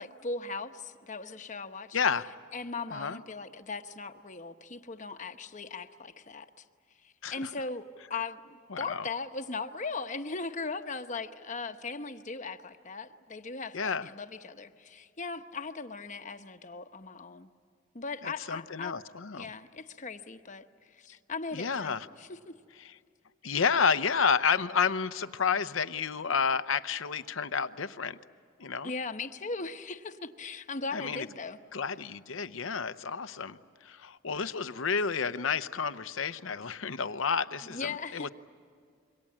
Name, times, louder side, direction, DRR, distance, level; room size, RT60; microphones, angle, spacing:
voice 1, 0.0-2.0 2.5-6.6 7.0-17.5 17.9-19.0 19.4-22.5 28.8-31.6 37.6-38.3, left 4 dB, 40° left, 8 dB, 0.9 m, -39 dB
voice 2, 1.9-2.3 2.9-3.2 7.2-7.5 8.7-9.0 13.7-14.1 18.2-19.5 21.5-22.1 22.8-22.9 23.4-28.2 28.6-28.9 30.9-31.3 31.7-38.3, left 6 dB, 80° left, 13 dB, 0.8 m, -30 dB
27.0 x 23.5 x 8.7 m, 2.2 s
head